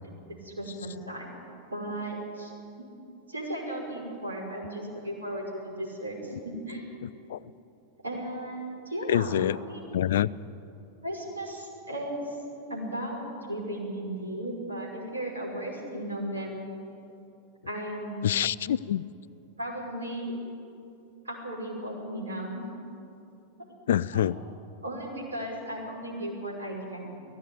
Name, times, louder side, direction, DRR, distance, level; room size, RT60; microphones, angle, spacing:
voice 1, 0.4-1.3 1.7-2.5 2.8-2.9 3.3-6.8 8.0-9.8 11.0-12.4 12.7-13.2 13.5-16.6 17.7-18.3 19.6-20.3 21.2-22.6 24.1-24.2 24.8-27.3, right 1 dB, 80° right, -2 dB, 5.7 m, -35 dB
voice 2, 7.0-7.5 9.1-9.6 9.9-10.3 18.2-19.0 23.9-24.4, left 11 dB, 60° left, 20 dB, 0.4 m, -26 dB
17.5 x 15.5 x 9.6 m, 2.7 s
figure-of-eight pair, 90°, 0 cm